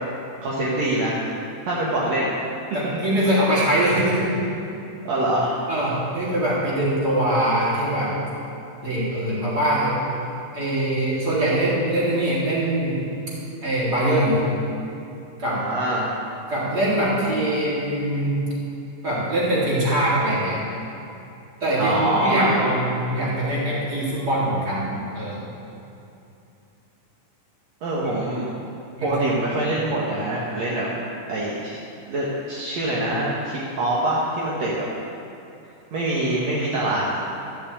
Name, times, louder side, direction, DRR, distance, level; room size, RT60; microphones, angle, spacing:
voice 1, 0.4-1.2 1.7-2.3 2.8-3.0 5.0-5.6 15.4-16.1 21.8-22.6 27.8-28.4 29.0-30.9 31.3-31.8 32.1-34.9 35.9-37.1, right 1 dB, 60° right, -6 dB, 2.7 m, -24 dB
voice 2, 2.7-4.4 5.7-8.1 8.8-10.0 10.5-13.0 13.6-14.4 15.4-15.6 16.5-18.3 19.0-20.6 21.6-25.4 28.0-28.1 29.0-29.1, right 1 dB, 30° right, -8 dB, 4.2 m, -22 dB
14.0 x 7.3 x 8.6 m, 2.7 s
omnidirectional pair, 3.5 m